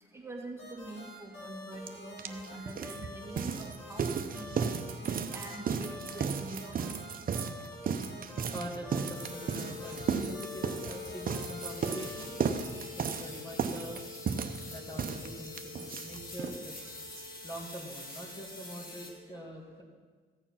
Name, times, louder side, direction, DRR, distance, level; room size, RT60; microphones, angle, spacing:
voice 1, 0.1-4.6 5.0-7.0, right 1 dB, 15° right, 0 dB, 2.0 m, -45 dB
sound 1, 0.6-12.6, left 1 dB, 85° left, 4.1 m, -47 dB
sound 2, 1.9-2.0 2.2-16.6 16.9-17.0 17.2-17.3 17.6-17.7, right 6 dB, 45° right, 0.8 m, -34 dB
voice 2, 8.5-12.5 13.0-14.0 14.7-16.9 17.4-19.8, equal, 20° left, 0 dB, 1.9 m, -44 dB
sound 3, 9.1-19.1, left 4 dB, 45° left, 2.3 m, -45 dB
15.0 x 7.0 x 5.7 m, 1.5 s
cardioid pair, 90°, 20 cm